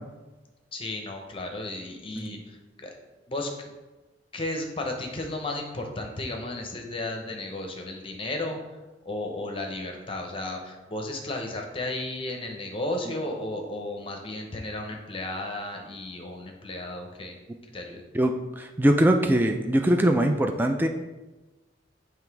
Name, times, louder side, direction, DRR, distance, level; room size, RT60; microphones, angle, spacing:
voice 1, 0.7-2.9 3.3-3.7 4.3-8.6 9.0-17.4 17.7-18.0, left 2 dB, 30° left, 2 dB, 0.7 m, -34 dB
voice 2, 18.1-20.9, right 1 dB, 10° right, 5 dB, 0.3 m, -22 dB
7.1 x 3.3 x 4.6 m, 1.1 s
head